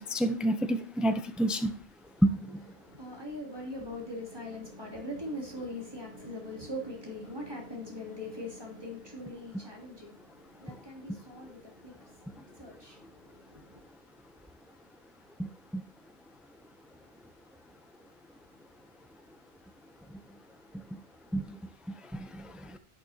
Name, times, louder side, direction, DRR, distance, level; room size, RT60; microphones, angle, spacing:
voice 1, 0.0-1.7 2.2-2.6 15.4-15.5 15.7-15.8 21.3-21.5 22.2-22.5, right 1 dB, ahead, 0.7 m, -28 dB
voice 2, 2.8-13.8, left 1 dB, 25° right, 3.5 m, -42 dB
11.0 x 6.8 x 2.9 m
omnidirectional pair, 1.1 m